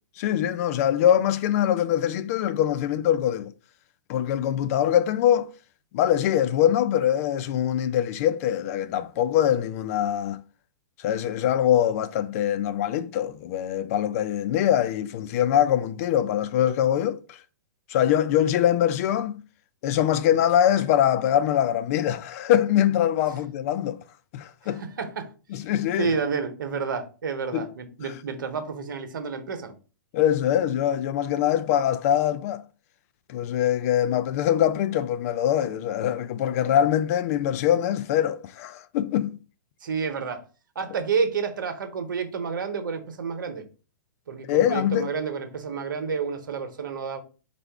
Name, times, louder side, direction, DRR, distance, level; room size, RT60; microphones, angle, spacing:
voice 1, 0.2-3.5 4.1-5.5 5.9-10.4 11.0-17.4 17.9-19.4 19.8-24.0 24.3-24.8 25.5-26.1 27.5-27.7 30.1-32.6 33.3-39.4 44.5-45.1, left 10 dB, 45° left, 0.4 m, -23 dB
voice 2, 24.6-25.3 26.0-29.7 39.8-40.5 40.7-43.7 44.3-47.2, right 5 dB, 80° right, 0.9 m, -30 dB
4.5 x 2.5 x 3.4 m
hypercardioid pair, 125°, 11 cm